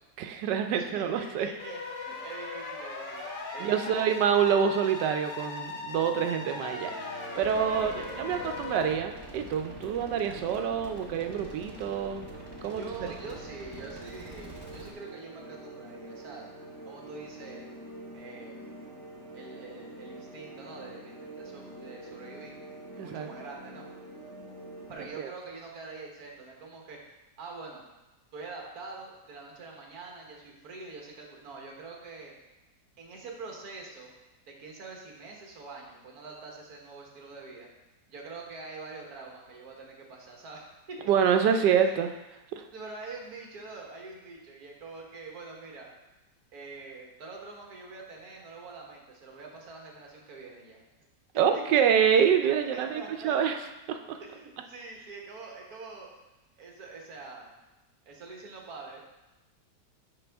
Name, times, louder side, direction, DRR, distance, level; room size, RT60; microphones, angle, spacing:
voice 1, 0.2-1.5 3.6-7.1 7.4-12.3 12.6-12.8 23.0-23.3 25.2-25.3 41.1-42.1 42.5-42.6 51.4-53.6 53.9-54.2, right 8 dB, 80° right, 6 dB, 1.2 m, -26 dB
voice 2, 0.7-4.3 7.7-8.3 12.8-16.5 16.9-17.7 18.1-18.7 19.3-22.6 22.9-23.9 24.9-27.0 27.4-27.8 28.3-32.3 33.0-34.1 34.5-37.7 38.1-41.0 41.3-42.0 42.7-45.9 46.5-50.8 51.3-51.6 52.4-53.4 54.2-56.1 56.6-57.5 58.1-59.1, right 3 dB, 60° right, 0 dB, 1.6 m, -45 dB
sound 1, 1.6-8.9, left 3 dB, 40° left, 0.7 m, -39 dB
sound 2, 6.0-25.1, right 1 dB, ahead, 2.0 m, -46 dB
sound 3, 7.4-14.9, right 2 dB, 20° right, 0.7 m, -47 dB
10.0 x 3.8 x 3.4 m, 1.0 s
omnidirectional pair, 1.9 m